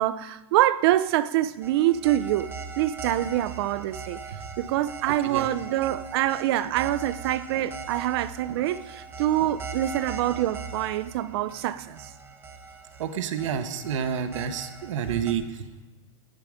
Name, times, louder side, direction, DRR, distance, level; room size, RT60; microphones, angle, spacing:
voice 1, 0.0-2.5 2.8-4.2 4.6-12.1, right 13 dB, 50° right, 16 dB, 0.6 m, -25 dB
sound 1, 1.6-15.3, right 4 dB, 15° right, 1.1 m, -40 dB
voice 2, 13.0-15.5, right 8 dB, 75° right, 9 dB, 1.4 m, -29 dB
19.5 x 9.2 x 5.1 m, 1.2 s
supercardioid pair, 160°, 16 cm